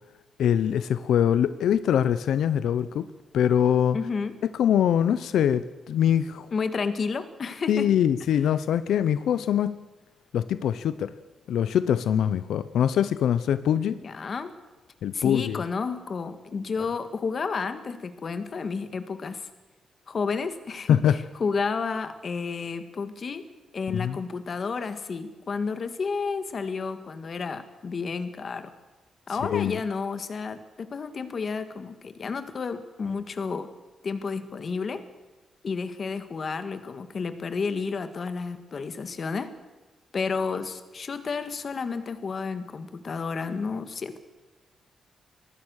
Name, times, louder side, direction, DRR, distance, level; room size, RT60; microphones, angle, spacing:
voice 1, 0.4-3.1 3.3-4.0 4.6-6.5 7.7-9.8 10.3-11.1 11.5-14.0 15.0-15.6 20.9-21.2 23.9-24.2 29.5-29.8, left 9 dB, 85° left, 14 dB, 0.8 m, -23 dB
voice 2, 3.9-4.4 6.5-7.9 13.9-14.5 15.1-19.5 20.1-23.5 23.7-28.7 29.3-33.7 34.0-35.0 35.6-39.5 40.1-44.2, left 5 dB, 35° left, 10 dB, 1.8 m, -31 dB
24.5 x 19.5 x 6.5 m, 1.2 s
wide cardioid pair, 170°, 0 cm